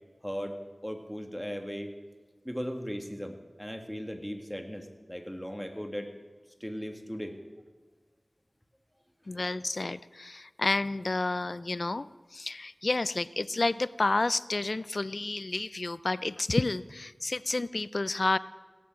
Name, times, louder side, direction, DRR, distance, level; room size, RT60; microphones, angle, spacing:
voice 1, 0.2-0.6 0.8-1.9 2.5-6.1 6.6-7.4, equal, 5° left, 5 dB, 1.8 m, -37 dB
voice 2, 9.3-18.4, left 2 dB, 70° left, 17 dB, 0.4 m, -30 dB
17.0 x 8.5 x 7.6 m, 1.4 s
wide cardioid pair, 40°, 0 cm